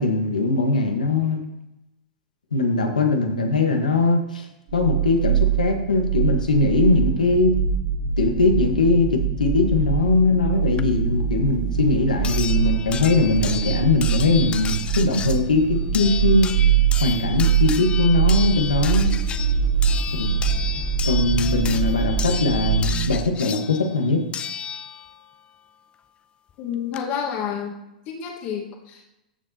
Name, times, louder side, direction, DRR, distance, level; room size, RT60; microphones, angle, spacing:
voice 1, 0.0-1.4 2.5-4.4 4.7-7.5 8.2-16.5 17.0-19.1 20.2-20.3 21.0-24.2, left 3 dB, 85° left, 3 dB, 1.4 m, -21 dB
sound 1, 4.7-23.1, right 8 dB, 50° right, 2.3 m, -23 dB
sound 2, 10.8-10.9 12.2-25.2 26.5-26.6 26.9-27.0, left 8 dB, 25° left, 0.5 m, -33 dB
voice 2, 26.6-27.8 28.1-29.1, left 8 dB, 45° left, 1 dB, 1.6 m, -29 dB
13.5 x 6.7 x 2.9 m, 0.91 s
hypercardioid pair, 105°, 4 cm